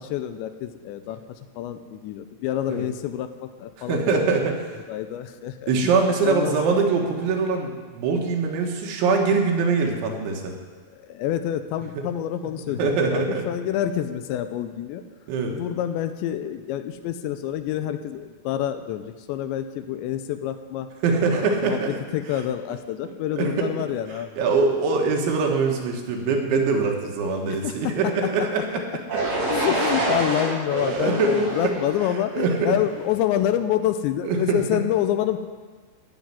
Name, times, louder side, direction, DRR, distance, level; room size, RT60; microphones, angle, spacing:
voice 1, 0.0-4.3 4.9-6.0 6.2-6.6 10.9-15.1 15.5-20.9 21.4-21.8 22.1-24.4 27.5-28.1 29.5-35.4, left 11 dB, 85° left, 10 dB, 2.9 m, -27 dB
voice 2, 3.9-4.6 5.7-10.6 12.0-12.1 12.8-13.4 15.3-15.5 21.0-22.0 23.1-23.7 24.4-28.8 30.1-30.2 30.7-31.5 32.3-32.8 34.3-34.6, right 4 dB, 90° right, 1 dB, 4.0 m, -23 dB
sound 1, 29.1-33.0, right 2 dB, 40° right, 3.9 m, -27 dB
14.0 x 6.4 x 9.9 m, 1.4 s
omnidirectional pair, 5.2 m